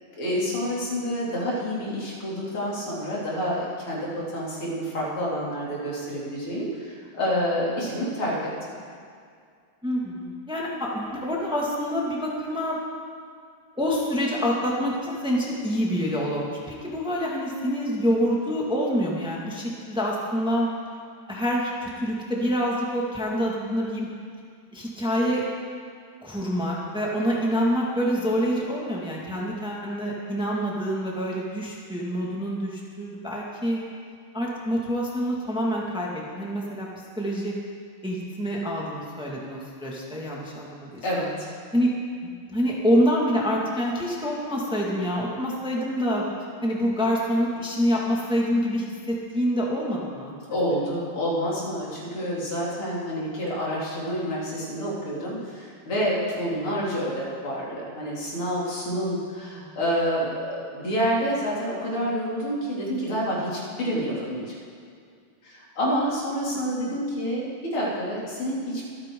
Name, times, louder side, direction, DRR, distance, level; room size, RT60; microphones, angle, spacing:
voice 1, 0.2-8.4 41.0-41.5 50.5-64.6 65.4-68.9, equal, 85° left, -5 dB, 3.9 m, -28 dB
voice 2, 9.8-12.8 13.8-20.7 21.3-24.1 24.7-25.4 26.2-33.8 34.3-36.9 37.2-37.5 38.0-41.3 41.7-41.9 42.2-46.2 46.6-50.3 59.6-59.7 66.9-67.0, equal, ahead, -3 dB, 1.7 m, -26 dB
24.5 x 9.2 x 3.8 m, 2.2 s
omnidirectional pair, 2.3 m